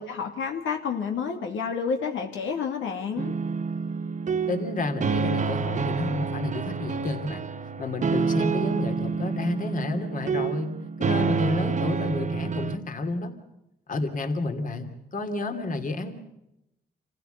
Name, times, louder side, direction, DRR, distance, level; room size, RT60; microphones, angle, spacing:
voice 1, 0.0-3.3, left 6 dB, 75° left, 2 dB, 2.6 m, -30 dB
sound 1, 3.2-12.8, right 5 dB, 40° right, 1.1 m, -28 dB
voice 2, 4.5-7.4 7.8-10.7 11.0-13.3 13.9-16.1, left 2 dB, 40° left, 6 dB, 2.9 m, -30 dB
27.5 x 15.5 x 8.1 m, 0.88 s
cardioid pair, 90°, 20 cm